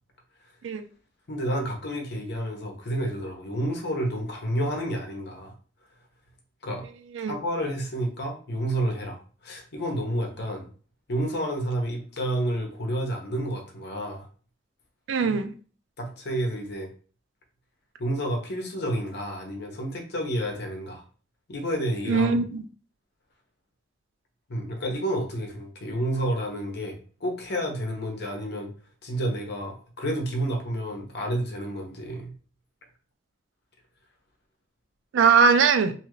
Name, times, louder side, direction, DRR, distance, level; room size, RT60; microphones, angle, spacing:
voice 1, 1.3-5.5 6.6-6.8 7.3-10.7 11.1-14.3 15.2-15.4 16.0-16.9 18.0-21.0 21.5-22.3 24.5-28.7 29.0-32.3, right 1 dB, 60° left, 0.8 m, -30 dB
voice 2, 15.1-15.5 22.1-22.6 35.1-35.9, right 5 dB, 70° right, 0.4 m, -21 dB
2.7 x 2.4 x 3.0 m
head